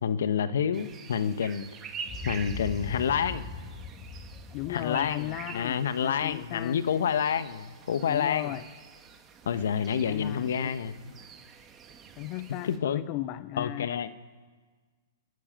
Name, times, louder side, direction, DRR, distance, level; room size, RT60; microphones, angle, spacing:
voice 1, 0.0-1.7 2.2-3.5 4.7-8.5 9.5-10.9 12.6-13.0 13.6-14.1, left 7 dB, 70° left, 12 dB, 1.3 m, -28 dB
sound 1, 0.7-12.8, right 6 dB, 25° right, 2.5 m, -47 dB
Boom, 2.0-6.3, left 4 dB, 25° left, 4.0 m, -41 dB
voice 2, 4.5-6.8 8.0-8.6 10.1-10.8 12.2-13.9, left 17 dB, 40° left, 16 dB, 0.5 m, -36 dB
29.5 x 11.0 x 9.0 m, 1.5 s
hypercardioid pair, 120°, 0 cm